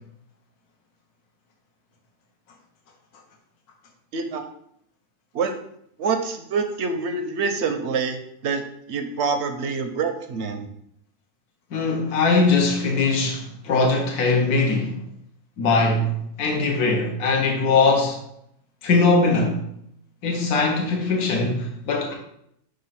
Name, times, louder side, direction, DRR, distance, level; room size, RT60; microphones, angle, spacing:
voice 1, 4.1-4.4 5.3-5.6 6.0-8.6 8.9-10.7, right 5 dB, 65° right, 0.7 m, -26 dB
voice 2, 11.7-14.9 15.6-18.2 18.8-19.6 20.2-22.1, left 3 dB, 75° left, 1.5 m, -21 dB
5.1 x 3.9 x 5.7 m
omnidirectional pair, 1.6 m